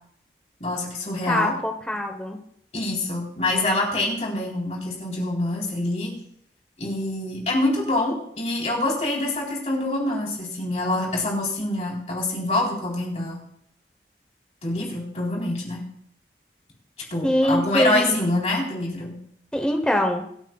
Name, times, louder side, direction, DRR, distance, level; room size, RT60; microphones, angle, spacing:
voice 1, 0.6-1.5 2.7-6.1 6.8-13.4 14.6-15.8 17.1-19.1, left 2 dB, 40° left, -2 dB, 3.7 m, -25 dB
voice 2, 1.3-2.4 17.2-18.2 19.5-20.2, equal, 5° left, 3 dB, 1.0 m, -23 dB
25.5 x 9.0 x 2.3 m, 0.68 s
head